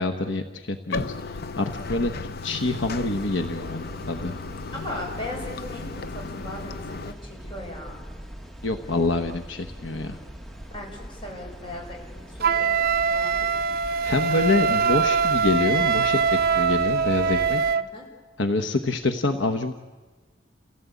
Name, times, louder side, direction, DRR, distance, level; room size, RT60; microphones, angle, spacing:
voice 1, 0.0-2.1 2.4-4.3 8.6-10.2 14.0-16.2 16.5-17.6 18.4-19.7, left 2 dB, 75° left, 7 dB, 1.1 m, -26 dB
Bathtub (filling or washing), 0.9-7.1, left 3 dB, 55° left, 0.7 m, -35 dB
sound 1, 2.6-17.7, equal, ahead, 1.4 m, -41 dB
voice 2, 4.7-8.0 10.7-13.5 14.5-14.8 17.9-18.0, left 1 dB, 25° left, -1 dB, 6.3 m, -38 dB
Wind instrument woodwind instrument, 12.4-17.9, right 6 dB, 55° right, 0.7 m, -23 dB
29.0 x 16.5 x 8.3 m, 1.3 s
head